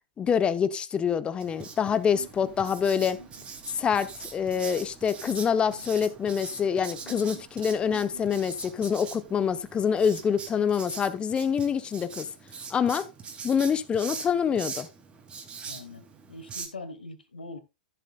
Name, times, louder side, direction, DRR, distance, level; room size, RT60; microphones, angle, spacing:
voice 1, 0.2-3.2 3.7-12.3 12.7-13.1 13.4-14.9, left 7 dB, 20° left, 1.0 m, -26 dB
Writing, 1.4-16.7, right 5 dB, 20° right, 2.7 m, -42 dB
sound 1, 1.8-11.2, right 4 dB, 85° right, 3.7 m, -52 dB
voice 2, 15.7-17.6, left 2 dB, 90° left, 2.3 m, -42 dB
15.0 x 7.5 x 2.4 m
hypercardioid pair, 110°, 5 cm